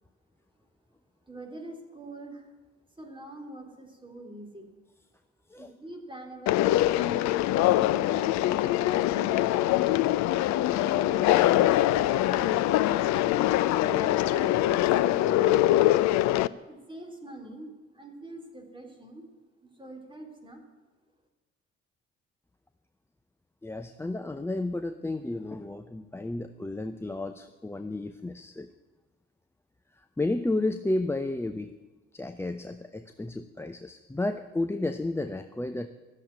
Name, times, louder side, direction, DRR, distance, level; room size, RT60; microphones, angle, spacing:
voice 1, 1.3-2.5 2.9-4.7 5.6-10.1 10.8-13.2 13.8-15.8 16.6-19.3 19.7-20.6, right 2 dB, 15° right, 2 dB, 3.4 m, -45 dB
Conversation, 6.5-16.5, left 14 dB, 55° left, 0.5 m, -23 dB
voice 2, 23.6-28.7 30.2-31.7 32.1-35.9, left 2 dB, 5° left, 8 dB, 0.6 m, -32 dB
12.5 x 7.4 x 9.9 m, 1.2 s
figure-of-eight pair, 45°, 34 cm